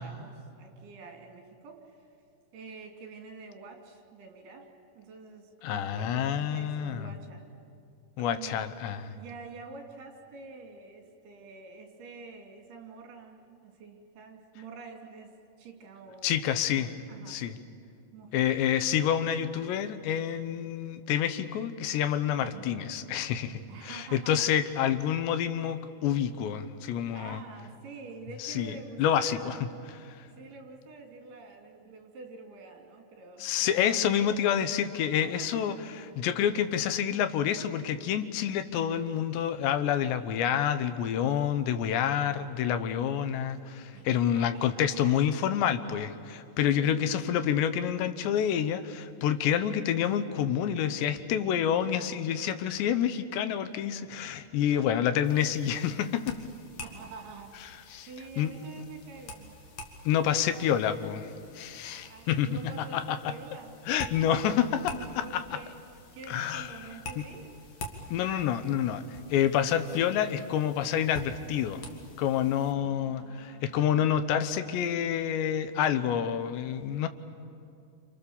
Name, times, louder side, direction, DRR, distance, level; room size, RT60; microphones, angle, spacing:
voice 1, 0.0-2.2 2.5-4.7 5.0-7.4 8.2-8.7 9.1-16.4 16.8-17.4 18.1-18.5 22.2-22.7 23.7-24.4 27.1-29.8 30.3-34.6 35.2-35.8 42.2-42.5 43.9-44.1 44.3-45.1 46.8-47.2 54.7-55.1 56.8-59.6 61.8-63.8 64.5-64.8 65.1-65.7 66.1-67.5 72.7-74.2, right 4 dB, 65° right, 3 dB, 4.6 m, -47 dB
voice 2, 5.6-7.1 8.2-9.2 16.2-16.9 17.3-17.6 18.3-27.4 28.4-29.6 30.2-30.3 33.4-35.7 36.2-56.4 57.9-58.1 58.4-58.5 60.1-62.6 62.9-63.3 63.9-65.4 66.3-66.7 68.1-69.0 69.3-71.8 72.2-77.1, left 9 dB, 80° left, 11 dB, 3.2 m, -28 dB
sound 1, 55.2-72.7, left 2 dB, 45° left, 2.7 m, -47 dB
27.5 x 27.5 x 7.1 m, 2.5 s
omnidirectional pair, 5.1 m